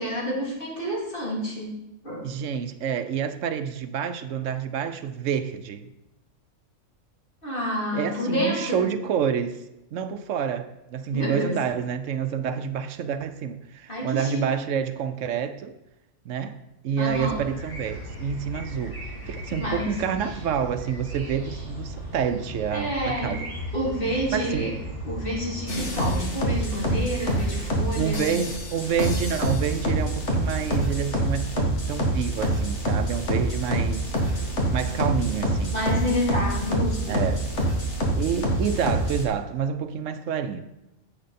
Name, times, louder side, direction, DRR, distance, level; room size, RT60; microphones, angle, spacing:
voice 1, 0.0-1.7 2.0-2.3 7.4-8.8 11.1-11.6 13.9-14.4 17.0-17.4 19.6-19.9 22.7-23.4 23.7-24.7 25.0-28.3 35.7-37.2, equal, 45° left, 3.5 m, -29 dB
voice 2, 2.2-5.9 7.9-9.6 9.9-15.7 16.2-16.6 16.8-23.5 24.3-24.7 27.9-34.1 34.7-35.8 37.1-37.4 38.2-40.7, right 7 dB, 75° right, 1.0 m, -28 dB
sound 1, 17.1-25.9, equal, 15° left, 4.0 m, -36 dB
sound 2, 25.7-39.2, right 1 dB, 65° left, 2.0 m, -26 dB
10.0 x 7.9 x 4.2 m
omnidirectional pair, 1.3 m